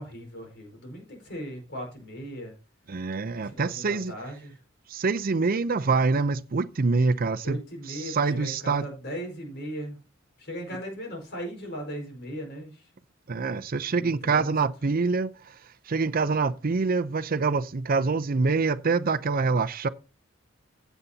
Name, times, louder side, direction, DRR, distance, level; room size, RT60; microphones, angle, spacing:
voice 1, 0.0-2.5 3.3-4.6 7.4-10.0 10.4-12.9 13.9-14.5, equal, 60° left, 5.0 m, -38 dB
voice 2, 2.9-4.1 4.9-7.6 7.9-8.9 13.3-15.6 15.9-19.9, right 4 dB, 45° right, 0.5 m, -25 dB
16.0 x 8.1 x 2.8 m
head